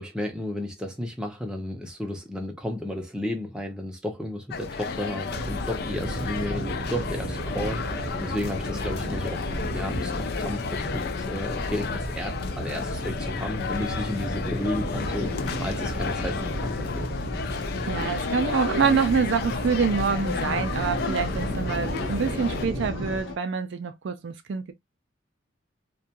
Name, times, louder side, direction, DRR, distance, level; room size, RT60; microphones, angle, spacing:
voice 1, 0.0-15.3 15.6-17.1, left 1 dB, 5° right, 0.6 m, -33 dB
sound 1, 4.5-22.7, left 5 dB, 50° left, 0.3 m, -33 dB
sound 2, 5.3-23.2, right 1 dB, 35° right, 0.8 m, -34 dB
sound 3, 14.9-23.4, left 1 dB, 80° left, 0.7 m, -38 dB
voice 2, 17.8-24.7, right 5 dB, 60° right, 0.4 m, -26 dB
2.4 x 2.2 x 2.8 m
head